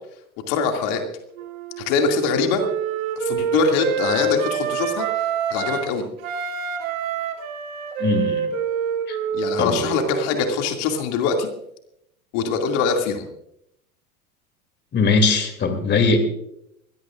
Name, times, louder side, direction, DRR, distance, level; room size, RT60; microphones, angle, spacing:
voice 1, 0.5-1.0 1.8-2.6 3.2-6.0 9.3-11.5 12.3-13.3, left 5 dB, 55° left, 3 dB, 2.6 m, -23 dB
Wind instrument woodwind instrument, 1.4-5.9 6.2-10.7, right 6 dB, 65° right, 3.2 m, -26 dB
voice 2, 8.0-8.5 9.1-9.2 9.6-9.8 14.9-16.2, left 4 dB, 25° left, 7 dB, 2.8 m, -20 dB
23.0 x 17.5 x 2.5 m, 0.77 s
hypercardioid pair, 90°, 44 cm